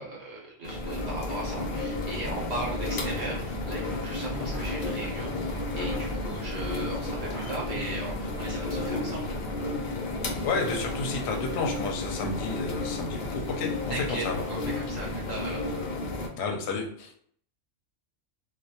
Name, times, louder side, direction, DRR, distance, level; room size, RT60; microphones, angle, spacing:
voice 1, 0.0-9.3 13.9-15.7, right 2 dB, 65° right, -2 dB, 0.8 m, -37 dB
sound 1, 0.6-16.3, left 2 dB, 85° left, 0.4 m, -32 dB
sound 2, 0.8-7.5, right 1 dB, 5° right, 0.7 m, -41 dB
voice 2, 10.4-14.4 16.3-17.1, left 4 dB, 65° left, 2 dB, 0.8 m, -31 dB
2.2 x 2.1 x 2.7 m, 0.62 s
omnidirectional pair, 1.3 m